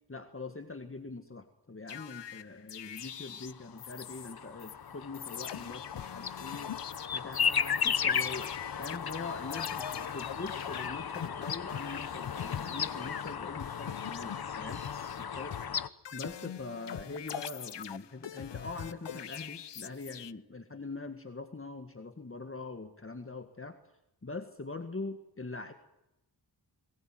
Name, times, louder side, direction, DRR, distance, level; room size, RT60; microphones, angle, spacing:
voice 1, 0.1-6.7 7.1-8.5 8.8-14.8 15.2-15.6 16.1-23.8 24.2-25.7, left 3 dB, 30° left, 7 dB, 1.9 m, -43 dB
sound 1, 1.9-4.3 4.6-4.7 5.1-13.3 13.6-15.2 15.5-20.3, left 9 dB, 90° left, 0.8 m, -43 dB
sound 2, 3.6-15.9, left 7 dB, 60° left, 1.1 m, -35 dB
22.0 x 20.0 x 9.2 m, 0.88 s
wide cardioid pair, 85°, 41 cm